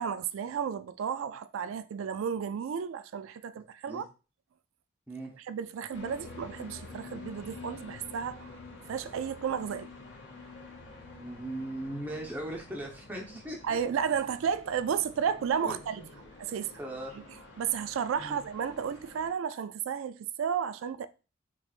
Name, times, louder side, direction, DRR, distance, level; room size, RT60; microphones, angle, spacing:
voice 1, 0.0-4.1 5.4-8.5 8.9-9.9 13.6-16.0 16.4-16.8 17.1-17.2 17.6-21.1, right 7 dB, 85° right, 0.3 m, -32 dB
sound 1, 5.9-19.3, left 3 dB, 60° left, 1.1 m, -48 dB
voice 2, 11.1-13.8 15.6-16.3 16.8-17.2 18.2-18.4, right 1 dB, 10° right, 0.9 m, -39 dB
4.5 x 3.2 x 2.4 m
head